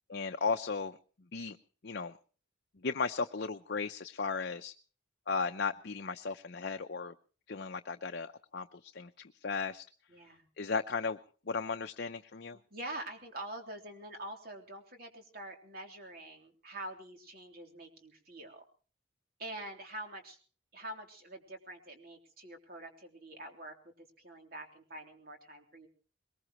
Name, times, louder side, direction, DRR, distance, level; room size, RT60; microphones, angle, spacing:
voice 1, 0.1-1.0 1.3-1.6 1.8-2.2 2.8-4.7 5.3-7.1 7.5-9.1 9.4-9.8 10.6-11.2 11.5-12.6, left 4 dB, 55° left, 6 dB, 0.7 m, -35 dB
voice 2, 10.1-10.5 12.5-18.6 19.4-20.4 20.7-25.9, right 1 dB, 45° right, 4 dB, 3.4 m, -46 dB
22.0 x 21.0 x 3.1 m, 0.40 s
head